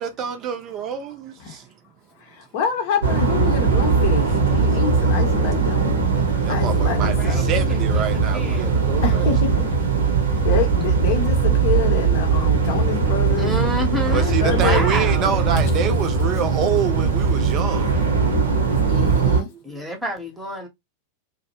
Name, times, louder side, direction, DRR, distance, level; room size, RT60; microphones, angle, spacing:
voice 1, 0.0-1.7 6.2-9.3 12.1-12.2 14.1-17.9, right 8 dB, 35° right, 0.5 m, -27 dB
voice 2, 2.2-7.5 9.0-9.6 10.2-13.5 14.1-14.9 18.9-19.5, left 7 dB, 50° left, 0.7 m, -27 dB
sound 1, 3.0-19.4, right 5 dB, 65° right, 0.7 m, -20 dB
voice 3, 6.8-8.7 13.4-15.3 19.6-20.7, left 1 dB, 5° right, 0.9 m, -29 dB
2.6 x 2.1 x 2.7 m
figure-of-eight pair, 90°, 0 cm